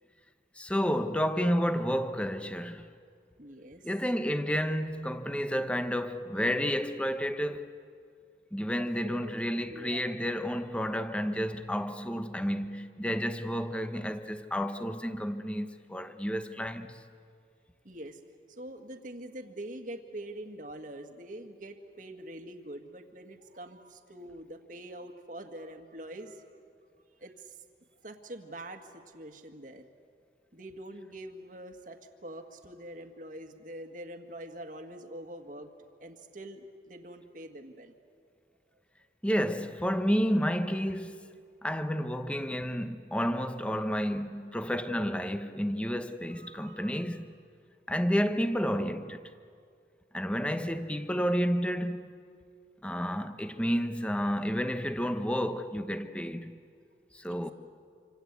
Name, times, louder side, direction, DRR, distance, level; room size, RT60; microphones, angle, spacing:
voice 1, 0.6-2.9 3.8-7.7 8.5-17.0 39.2-41.3 41.6-47.3 47.9-49.3 50.1-52.1 52.8-56.5 57.1-57.5, equal, 5° left, 1.0 m, -30 dB
voice 2, 3.4-3.9 8.8-10.2 17.8-18.2 18.5-26.4 27.2-27.6 28.0-29.9 30.5-35.7 36.0-38.0 46.3-47.0 57.3-57.5, right 1 dB, 50° right, 1.9 m, -45 dB
27.0 x 26.0 x 8.3 m
head